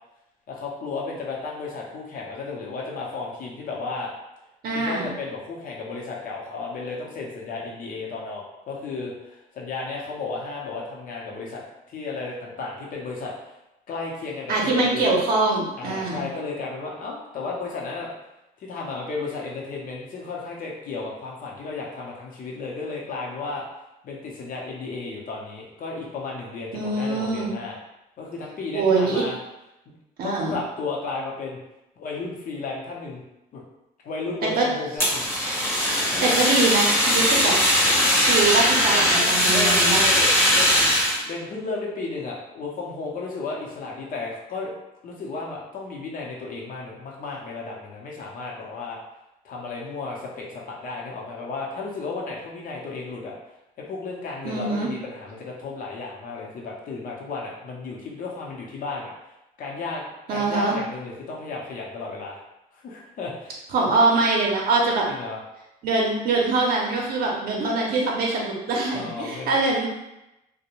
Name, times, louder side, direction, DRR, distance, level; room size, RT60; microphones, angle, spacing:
voice 1, 0.5-4.1 4.7-13.3 13.9-15.1 15.8-18.1 18.6-23.6 24.0-27.8 28.2-29.4 30.2-31.6 32.0-33.2 33.5-33.6 34.0-35.3 36.1-36.2 39.1-44.7 45.0-49.0 49.4-53.4 53.9-59.1 59.6-62.4 62.7-63.6 65.1-65.4 68.9-69.6, left 3 dB, 55° left, -2 dB, 0.7 m, -33 dB
voice 2, 4.6-5.1 14.5-16.2 26.7-27.5 28.7-29.2 30.2-30.6 34.5-34.7 36.0-37.5 38.1-40.0 54.4-54.9 60.3-60.7 63.7-65.0 65.8-69.9, right 3 dB, 60° right, -2 dB, 0.6 m, -23 dB
Fire, 35.0-41.2, equal, 15° left, 0.8 m, -20 dB
2.5 x 2.1 x 3.0 m, 0.92 s
cardioid pair, 110°, 17 cm